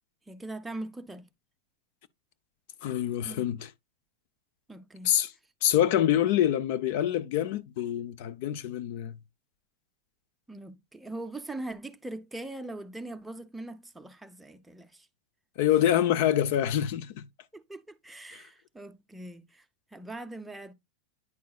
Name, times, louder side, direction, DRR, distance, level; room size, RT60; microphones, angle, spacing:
voice 1, 0.3-1.3 3.2-3.6 4.7-5.1 6.1-6.3 10.5-15.1 17.5-19.6 19.9-20.7, right 2 dB, 5° right, 0.6 m, -41 dB
voice 2, 2.8-3.7 5.0-5.3 5.6-9.2 15.6-17.1, left 11 dB, 55° left, 0.5 m, -26 dB
9.5 x 5.2 x 2.3 m
supercardioid pair, 155°, 0 cm